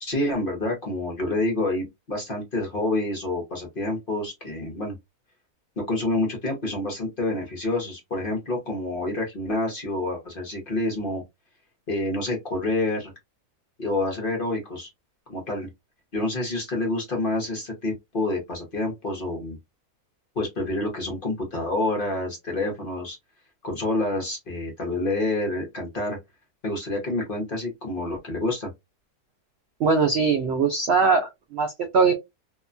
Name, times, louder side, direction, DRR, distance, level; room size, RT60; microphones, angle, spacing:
voice 1, 0.0-4.9 5.8-11.2 11.9-13.1 13.8-14.9 15.3-15.7 16.1-19.6 20.4-23.2 23.6-26.2 26.6-28.7, left 2 dB, 40° left, 0.9 m, -28 dB
voice 2, 29.8-32.1, right 5 dB, 80° right, 0.6 m, -21 dB
2.8 x 2.2 x 2.4 m
omnidirectional pair, 1.7 m